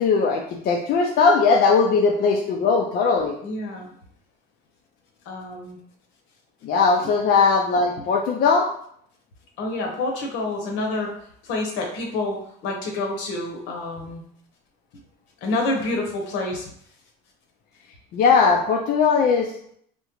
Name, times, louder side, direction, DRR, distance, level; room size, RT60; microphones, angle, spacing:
voice 1, 0.0-3.4 6.6-8.7 18.1-19.7, left 5 dB, 50° left, 1 dB, 0.4 m, -19 dB
voice 2, 3.4-3.9 5.3-5.8 7.0-7.1 8.0-8.1 9.6-11.1 11.4-14.2 15.4-16.6, left 2 dB, 75° left, 1 dB, 0.9 m, -28 dB
3.7 x 2.1 x 2.9 m, 0.66 s
cardioid pair, 115°, 20 cm